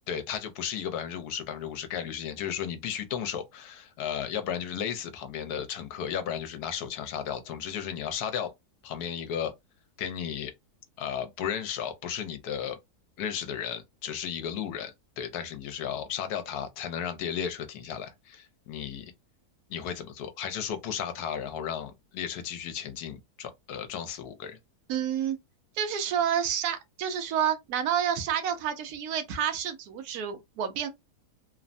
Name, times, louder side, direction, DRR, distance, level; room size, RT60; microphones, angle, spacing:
voice 1, 0.1-8.5 8.8-9.5 10.0-10.5 11.0-12.8 13.2-19.1 19.7-24.6, left 8 dB, 85° left, 1.2 m, -34 dB
voice 2, 24.9-25.4 25.7-30.9, right 9 dB, 80° right, 1.1 m, -29 dB
3.1 x 2.1 x 2.5 m
omnidirectional pair, 1.6 m